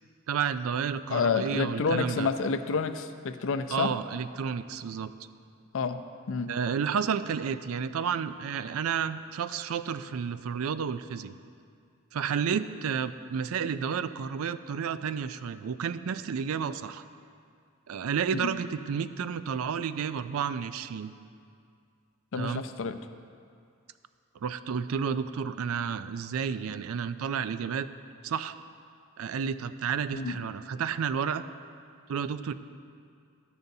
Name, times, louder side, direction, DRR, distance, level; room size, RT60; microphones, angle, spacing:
voice 1, 0.3-2.3 3.7-5.1 6.5-11.3 12.1-17.0 17.9-21.1 22.3-22.6 24.4-27.9 28.2-28.6 29.2-31.4 32.1-32.5, right 7 dB, 70° right, 13 dB, 0.4 m, -31 dB
voice 2, 1.1-3.9 5.7-6.0 6.3-6.5 18.4-18.5 22.3-23.0 30.1-30.3, left 5 dB, 65° left, 9 dB, 0.5 m, -29 dB
12.5 x 10.5 x 2.7 m, 2.3 s
head